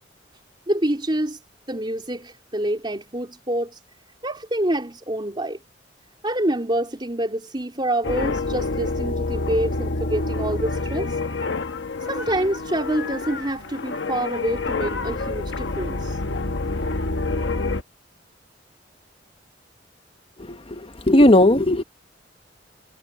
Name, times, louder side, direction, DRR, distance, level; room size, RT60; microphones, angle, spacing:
voice 1, 0.7-1.4 1.7-3.8 4.2-5.6 6.2-11.2 12.1-16.2, right 1 dB, 25° right, 3.6 m, -26 dB
sound 1, 8.0-17.8, left 3 dB, 75° left, 1.1 m, -27 dB
voice 2, 20.4-21.8, left 1 dB, 30° left, 1.2 m, -17 dB
head